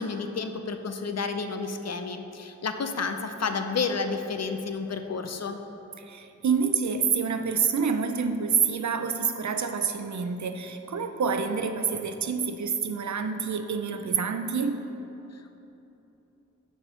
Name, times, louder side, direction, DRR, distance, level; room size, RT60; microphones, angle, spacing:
voice 1, 0.0-5.6 15.3-15.6, left 4 dB, 60° left, 7 dB, 0.5 m, -31 dB
voice 2, 6.0-14.8, right 6 dB, 70° right, 8 dB, 0.5 m, -27 dB
6.1 x 4.5 x 6.1 m, 3.0 s
wide cardioid pair, 50°, 30 cm